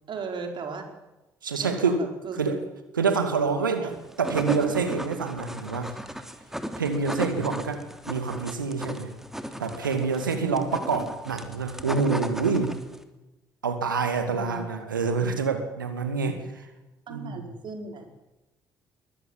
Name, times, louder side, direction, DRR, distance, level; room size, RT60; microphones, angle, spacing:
voice 1, 0.1-0.9 1.6-2.4 3.6-3.9 10.3-10.6 14.3-14.6 17.1-18.1, right 5 dB, 50° right, 4 dB, 5.0 m, -37 dB
voice 2, 1.4-2.0 2.4-2.6 2.9-5.9 6.8-9.1 9.6-12.8 13.6-16.7 17.1-17.4, right 5 dB, 80° right, 8 dB, 2.3 m, -27 dB
sound 1, 3.9-13.0, equal, 5° right, 3.0 m, -36 dB
22.0 x 20.5 x 9.1 m, 1.0 s
figure-of-eight pair, 45°, 11 cm